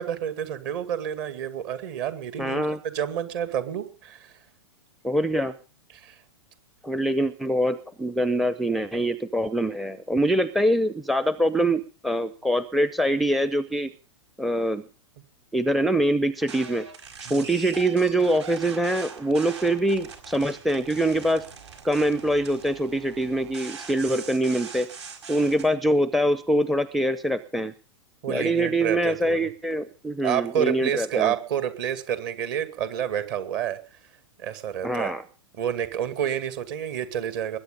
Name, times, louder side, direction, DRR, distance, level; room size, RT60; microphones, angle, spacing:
voice 1, 0.0-4.4 5.9-6.2 17.3-17.5 28.2-29.5 30.2-34.0 34.4-35.1 35.6-37.6, right 9 dB, 45° right, 11 dB, 2.2 m, -29 dB
voice 2, 2.4-2.8 5.0-5.5 6.8-13.9 14.4-14.8 15.5-16.8 17.3-21.4 21.8-24.9 25.3-27.7 28.3-31.3 34.8-35.2, right 1 dB, ahead, 15 dB, 0.6 m, -24 dB
sound 1, 16.4-25.7, right 5 dB, 65° right, 4.9 m, -42 dB
21.0 x 9.3 x 5.3 m, 0.37 s
figure-of-eight pair, 105°, 16 cm